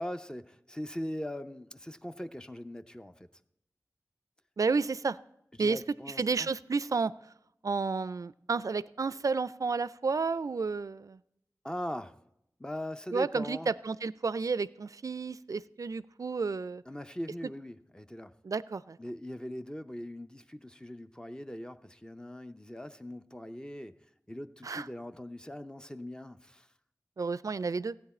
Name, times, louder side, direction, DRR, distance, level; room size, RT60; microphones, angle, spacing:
voice 1, 0.0-3.3 5.6-6.5 11.6-12.1 12.6-13.7 16.9-18.3 19.0-24.0 24.3-26.7, left 1 dB, 15° left, 9 dB, 0.6 m, -40 dB
voice 2, 4.6-5.2 5.6-5.8 6.2-7.1 7.6-11.2 13.1-16.8 18.4-19.0 24.6-24.9 27.2-28.0, right 4 dB, 65° right, 18 dB, 0.4 m, -31 dB
15.0 x 9.3 x 4.2 m, 0.80 s
wide cardioid pair, 55°, 6 cm